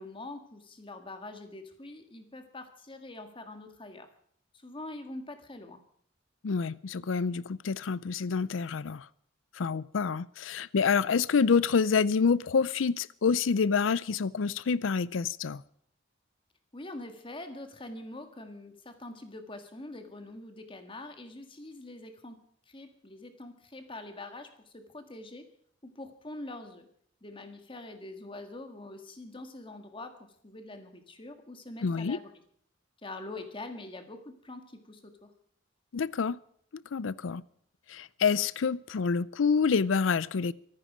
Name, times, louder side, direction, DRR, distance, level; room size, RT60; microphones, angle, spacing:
voice 1, 0.0-4.1 4.6-5.8 16.7-22.4 22.7-25.5 25.8-26.9 27.2-30.2 30.4-32.3 33.0-35.3, left 2 dB, 25° left, 1.8 m, -44 dB
voice 2, 6.4-9.0 9.6-15.6 31.8-32.2 35.9-36.4 36.7-37.4 37.9-40.5, left 5 dB, 85° left, 0.5 m, -27 dB
24.0 x 9.7 x 5.1 m
head